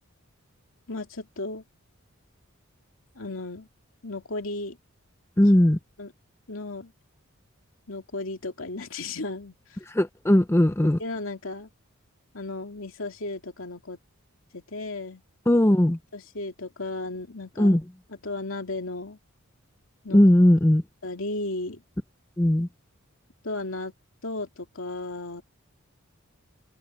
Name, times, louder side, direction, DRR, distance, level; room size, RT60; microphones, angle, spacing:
voice 1, 0.9-1.6 3.1-3.7 4.0-4.8 6.0-6.1 6.5-6.9 7.9-9.6 11.0-11.7 12.3-14.0 14.5-15.2 16.1-17.8 18.1-19.2 20.0-20.2 21.0-21.8 23.4-23.9 24.2-25.4, left 2 dB, 65° left, 2.5 m, -34 dB
voice 2, 5.4-5.8 9.9-11.0 15.5-16.0 17.6-17.8 20.1-20.8 22.4-22.7, left 1 dB, 10° left, 0.5 m, -18 dB
head